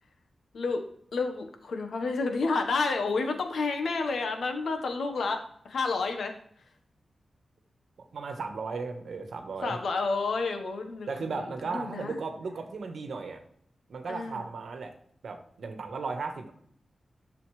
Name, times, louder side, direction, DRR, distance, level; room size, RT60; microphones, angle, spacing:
voice 1, 1.1-6.4 9.6-12.2 14.1-14.4, left 4 dB, 80° left, 5 dB, 1.3 m, -30 dB
voice 2, 8.1-9.8 11.1-13.4 13.9-14.9 15.2-16.6, right 4 dB, 75° right, 6 dB, 1.3 m, -36 dB
11.0 x 6.9 x 3.3 m, 0.66 s
wide cardioid pair, 170°, 0 cm